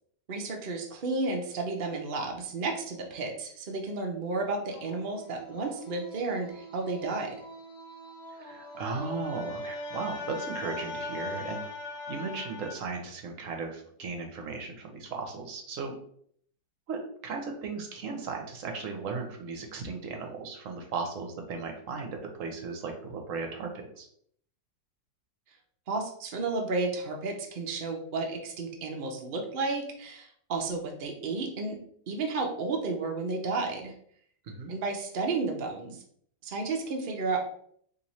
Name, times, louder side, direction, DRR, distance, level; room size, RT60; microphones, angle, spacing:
voice 1, 0.3-7.4 25.9-31.8 32.1-33.9 34.7-36.0 36.4-37.4, right 3 dB, 90° right, 1 dB, 0.4 m, -32 dB
sound 1, 4.7-12.7, left 2 dB, 85° left, 1.3 m, -40 dB
voice 2, 8.3-11.6 12.1-15.9 16.9-24.1 34.4-34.7, right 4 dB, 60° right, 3 dB, 0.9 m, -36 dB
3.0 x 2.8 x 4.0 m, 0.63 s
omnidirectional pair, 1.9 m